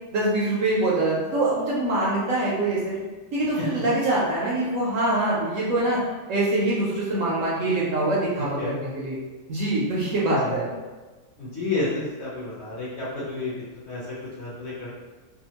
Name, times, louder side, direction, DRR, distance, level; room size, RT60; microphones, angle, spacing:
voice 1, 0.1-3.0 3.3-6.0 6.3-9.2 9.5-10.7, right 2 dB, 70° right, -6 dB, 0.8 m, -24 dB
voice 2, 11.4-13.5 13.9-14.0 14.4-14.9, left 3 dB, 55° left, -8 dB, 0.8 m, -30 dB
2.7 x 2.2 x 2.8 m, 1.3 s
omnidirectional pair, 1.7 m